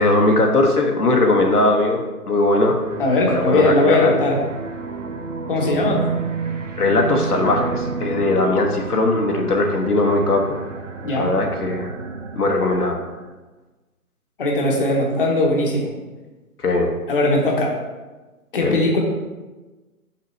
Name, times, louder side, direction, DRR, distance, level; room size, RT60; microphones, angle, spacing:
voice 1, 0.0-2.8 3.3-4.2 5.6-5.8 6.8-10.4 11.2-11.9 12.3-13.0 16.6-16.9 18.6-18.7, left 2 dB, 90° left, 2 dB, 1.2 m, -19 dB
sound 1, 2.8-13.3, right 5 dB, 55° right, 0.8 m, -31 dB
voice 2, 3.0-4.4 5.5-6.0 11.0-11.3 14.4-15.9 17.1-17.7 18.5-19.0, left 2 dB, 35° left, 0 dB, 1.0 m, -19 dB
6.1 x 5.6 x 3.1 m, 1.2 s
figure-of-eight pair, 155°, 45 cm